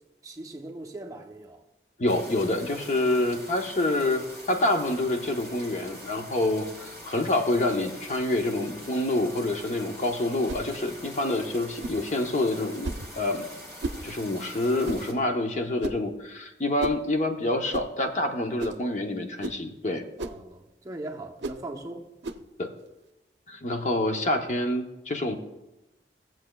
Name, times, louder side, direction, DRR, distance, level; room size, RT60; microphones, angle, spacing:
voice 1, 0.2-1.6 20.2-22.1, right 2 dB, 20° right, 0.7 m, -40 dB
voice 2, 2.0-13.5 14.0-20.0 22.6-22.7 23.5-25.3, left 1 dB, 40° left, 0.8 m, -27 dB
sound 1, 2.1-15.1, equal, 15° left, 1.9 m, -44 dB
sound 2, 10.5-10.7 11.8-12.0 12.8-13.1 13.8-14.0 14.8-15.1 15.8-16.1 16.8-17.0 17.7-17.9 18.6-18.8 19.4-19.6 20.2-20.4 21.4-21.6 22.2-22.4, right 2 dB, 85° right, 0.5 m, -34 dB
17.0 x 7.5 x 2.3 m
head